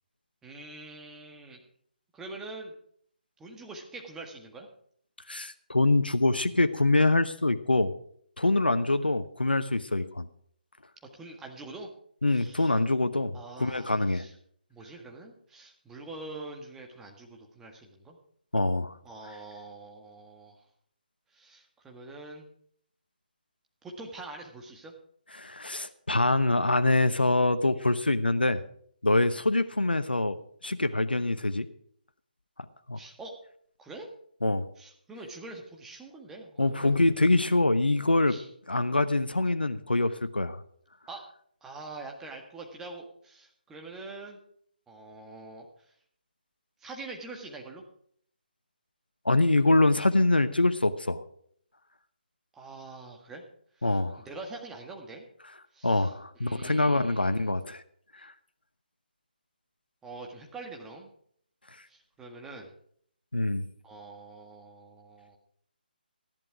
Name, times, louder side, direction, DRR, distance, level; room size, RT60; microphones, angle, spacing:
voice 1, 0.4-1.6 2.1-2.7 3.4-4.7 11.1-11.9 12.3-12.7 13.3-14.3 14.7-18.2 19.0-20.6 21.3-22.5 23.8-24.9 32.9-33.3 33.8-34.1 34.8-37.1 38.3-38.5 41.1-41.2 41.6-44.4 44.9-45.7 46.8-47.8 52.5-53.4 53.8-55.2 55.7-56.1 56.4-57.5 60.0-61.1 61.9-62.7 63.8-65.4, right 3 dB, 10° right, 1 dB, 1.7 m, -44 dB
voice 2, 5.3-7.9 8.4-10.2 12.2-14.3 18.5-19.0 25.4-28.6 29.0-30.4 30.6-31.7 32.9-33.0 34.4-34.7 36.6-38.4 38.7-40.6 49.2-51.2 53.8-54.2 55.8-57.8 58.2-58.3 63.3-63.6, left 2 dB, 85° left, 11 dB, 0.9 m, -25 dB
13.5 x 11.0 x 4.8 m, 0.63 s
figure-of-eight pair, 145°, 5 cm